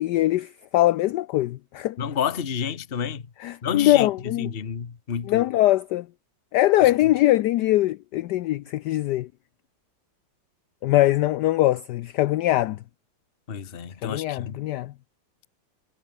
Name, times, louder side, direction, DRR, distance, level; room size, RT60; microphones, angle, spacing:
voice 1, 0.0-2.0 3.4-4.5 5.3-6.1 6.5-9.3 10.8-12.8 14.0-14.9, left 15 dB, 70° left, 1.1 m, -22 dB
voice 2, 2.0-3.2 3.6-5.5 6.8-6.9 13.5-14.6, left 7 dB, 35° left, 1.3 m, -30 dB
omnidirectional pair, 2.1 m